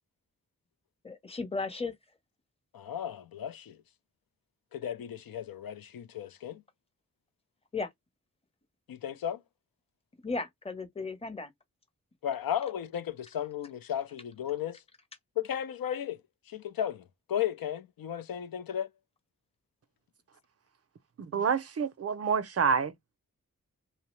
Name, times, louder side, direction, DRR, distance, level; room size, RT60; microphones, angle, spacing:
voice 1, 1.0-1.9 7.7-7.9 10.2-11.5 21.3-21.4, left 3 dB, 15° left, 0.7 m, -35 dB
voice 2, 2.7-3.8 4.7-6.6 8.9-9.4 12.2-14.8 15.4-16.2 16.5-18.9, left 10 dB, 80° left, 0.5 m, -34 dB
voice 3, 21.2-22.9, right 6 dB, 45° right, 0.5 m, -28 dB
2.7 x 2.0 x 3.0 m
wide cardioid pair, 75°, 35 cm